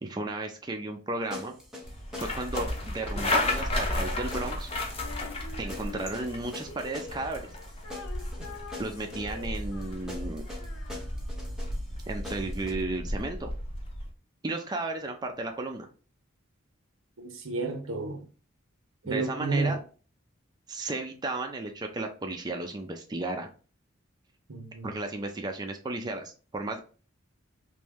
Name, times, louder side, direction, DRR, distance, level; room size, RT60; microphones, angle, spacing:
voice 1, 0.0-1.6 2.2-4.7 5.6-7.5 8.8-10.4 12.1-13.5 14.4-15.9 19.0-19.8 20.7-23.5 24.8-26.8, right 2 dB, 20° right, 0.4 m, -34 dB
sound 1, 1.3-12.7, left 2 dB, 5° right, 0.8 m, -44 dB
sound 2, 1.8-14.1, left 1 dB, 30° left, 0.7 m, -34 dB
Female singing, 5.0-11.5, left 4 dB, 85° left, 0.7 m, -47 dB
voice 2, 17.2-18.3 19.0-19.8 24.5-24.9, right 3 dB, 75° right, 0.7 m, -31 dB
3.1 x 2.6 x 3.4 m
head